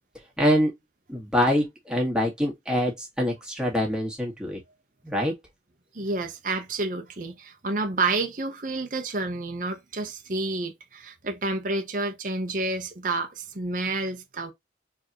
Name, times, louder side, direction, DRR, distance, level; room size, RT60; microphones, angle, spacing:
voice 1, 0.4-0.7 1.1-4.6 5.0-5.3, equal, 5° right, 1.8 m, -25 dB
voice 2, 5.9-14.5, right 3 dB, 45° right, 0.9 m, -29 dB
4.6 x 3.7 x 3.0 m
head